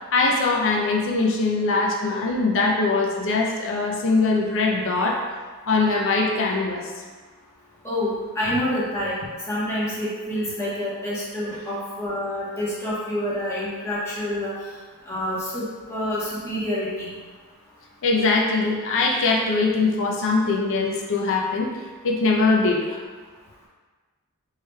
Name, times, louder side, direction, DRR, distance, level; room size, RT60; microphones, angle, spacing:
voice 1, 0.0-5.2 5.6-6.9 18.0-21.7 22.0-23.0, left 3 dB, 60° left, -1 dB, 0.5 m, -22 dB
voice 2, 7.8-9.2 9.5-14.5 15.1-17.1 20.2-20.3, left 1 dB, 15° left, -8 dB, 1.0 m, -27 dB
4.6 x 3.2 x 2.2 m, 1.4 s
head